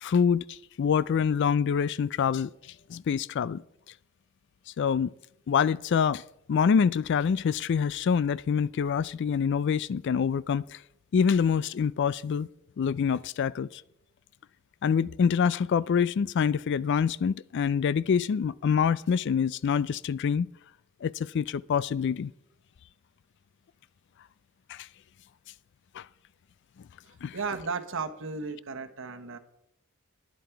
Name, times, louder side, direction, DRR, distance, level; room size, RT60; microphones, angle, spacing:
voice 1, 0.0-2.5 2.9-3.6 4.8-5.1 5.5-6.2 6.5-10.8 11.1-12.5 12.8-13.8 14.8-20.5 21.0-22.3 24.7-24.9 25.9-26.0 27.2-27.4, left 6 dB, 55° left, 0.3 m, -26 dB
voice 2, 27.3-29.4, right 4 dB, 60° right, 1.1 m, -34 dB
11.5 x 10.5 x 4.6 m
head